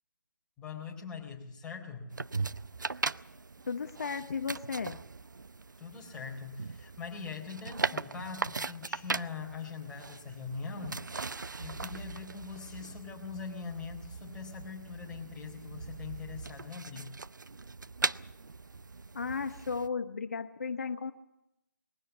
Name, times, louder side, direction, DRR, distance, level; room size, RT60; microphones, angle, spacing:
voice 1, 0.6-2.1 5.8-11.3 11.6-17.1, left 5 dB, 5° left, -1 dB, 4.0 m, -42 dB
sound 1, 2.1-19.9, right 4 dB, 65° right, 0.8 m, -39 dB
voice 2, 3.7-5.0 19.1-21.1, left 5 dB, 45° left, 9 dB, 1.1 m, -35 dB
22.0 x 16.5 x 8.4 m, 0.83 s
figure-of-eight pair, 150°, 11 cm